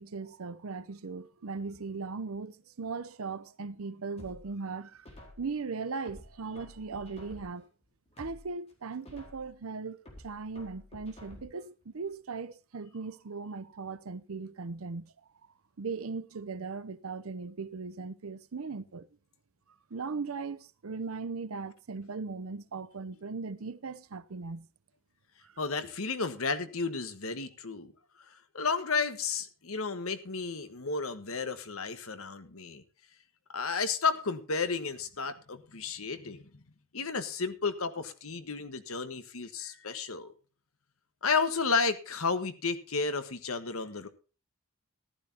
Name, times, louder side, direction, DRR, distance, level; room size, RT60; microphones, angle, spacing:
voice 1, 0.0-5.1 5.4-7.7 8.2-10.0 10.2-15.1 15.8-19.1 19.9-24.7 25.4-25.5, right 4 dB, 90° right, 0.7 m, -38 dB
sound 1, 4.2-5.6 6.1-7.7 8.1-9.6 10.1-11.7 12.1-12.2, left 1 dB, 30° left, 4.3 m, -51 dB
voice 2, 25.6-27.9 28.3-32.8 33.5-36.4 36.9-40.3 41.2-44.1, left 4 dB, 85° left, 1.4 m, -32 dB
14.5 x 12.5 x 2.8 m
head